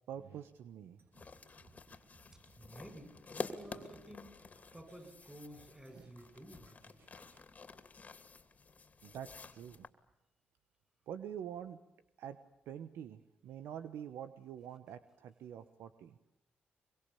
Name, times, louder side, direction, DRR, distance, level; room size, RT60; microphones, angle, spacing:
voice 1, 0.1-1.0 5.9-6.1 7.3-7.4 9.0-9.9 11.1-11.8 12.2-12.4 12.7-16.2, right 9 dB, 90° right, 11 dB, 1.2 m, -46 dB
sound 1, 1.0-7.5, right 3 dB, 65° right, 5.0 m, -66 dB
sound 2, 1.1-9.9, left 4 dB, 40° left, 2.7 m, -49 dB
voice 2, 2.6-4.4 4.7-7.0, right 1 dB, 15° right, 9 dB, 7.0 m, -52 dB
24.5 x 23.5 x 8.5 m, 0.88 s
cardioid pair, 75°, 4 cm